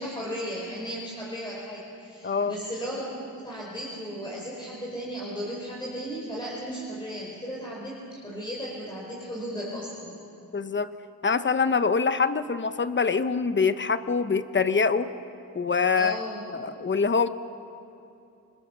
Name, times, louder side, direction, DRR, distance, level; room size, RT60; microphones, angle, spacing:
voice 1, 0.0-10.1 15.9-16.4, equal, 10° left, -5 dB, 4.6 m, -35 dB
voice 2, 2.2-2.5 10.5-10.9 11.2-15.1 15.5-16.2 16.5-17.3, left 5 dB, 35° left, 12 dB, 1.0 m, -24 dB
26.0 x 21.0 x 6.9 m, 2.7 s
cardioid pair, 85°, 35 cm